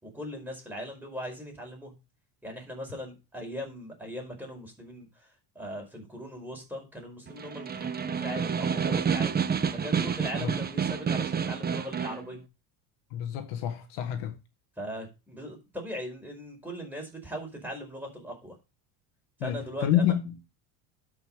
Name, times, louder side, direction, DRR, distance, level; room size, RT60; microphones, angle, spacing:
voice 1, 0.0-1.9 2.4-9.4 9.7-12.4 14.8-18.6 19.4-20.1, equal, 5° right, 4.8 m, -39 dB
Snare drum, 7.3-12.3, right 6 dB, 20° right, 0.8 m, -29 dB
voice 2, 13.1-14.4 19.4-20.3, left 10 dB, 75° left, 1.8 m, -28 dB
12.5 x 5.6 x 3.7 m
supercardioid pair, 105°, 46 cm